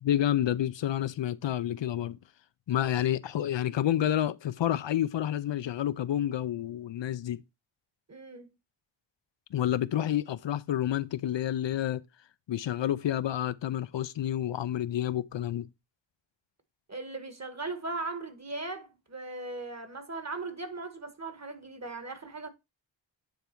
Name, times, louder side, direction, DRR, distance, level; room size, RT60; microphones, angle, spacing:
voice 1, 0.0-2.2 2.7-7.4 9.5-12.0 12.5-15.7, left 11 dB, 70° left, 0.5 m, -29 dB
voice 2, 8.1-8.5 16.9-22.5, right 3 dB, 35° right, 1.5 m, -38 dB
9.1 x 3.4 x 4.4 m
cardioid pair, 50°, 46 cm